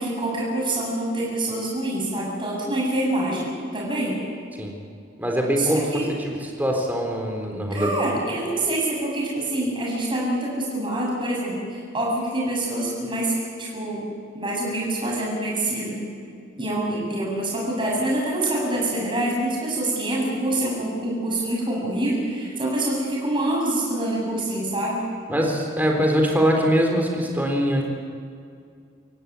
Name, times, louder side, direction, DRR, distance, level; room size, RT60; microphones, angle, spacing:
voice 1, 0.0-4.2 5.6-6.1 7.7-13.3 13.6-14.1 14.3-16.0 16.6-25.1, right 1 dB, 25° right, -4 dB, 7.9 m, -26 dB
voice 2, 5.2-8.0 25.3-27.8, equal, 10° right, 1 dB, 3.7 m, -23 dB
26.0 x 15.5 x 9.5 m, 2.3 s
head